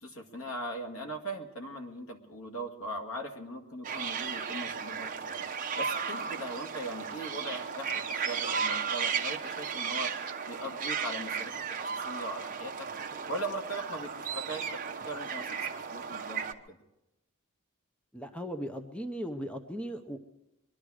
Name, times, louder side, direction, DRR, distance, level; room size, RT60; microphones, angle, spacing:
voice 1, 0.0-5.4 5.8-10.1 10.5-11.5 11.8-12.9 13.3-16.8, right 1 dB, 75° left, 4 dB, 2.1 m, -39 dB
sound 1, 3.8-16.5, right 6 dB, 40° right, 0.9 m, -35 dB
voice 2, 18.1-20.2, equal, 5° left, 7 dB, 0.7 m, -37 dB
23.0 x 11.5 x 4.9 m, 0.92 s
head